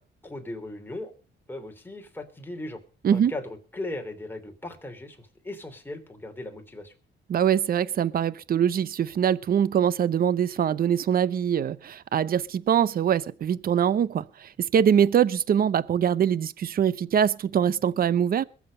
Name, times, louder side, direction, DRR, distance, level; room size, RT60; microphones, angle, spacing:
voice 1, 0.2-1.1 1.5-2.8 3.1-6.9, left 2 dB, 10° left, 3.2 m, -37 dB
voice 2, 7.3-18.4, right 8 dB, 50° right, 0.7 m, -23 dB
21.5 x 7.3 x 5.4 m
cardioid pair, 90°, 20 cm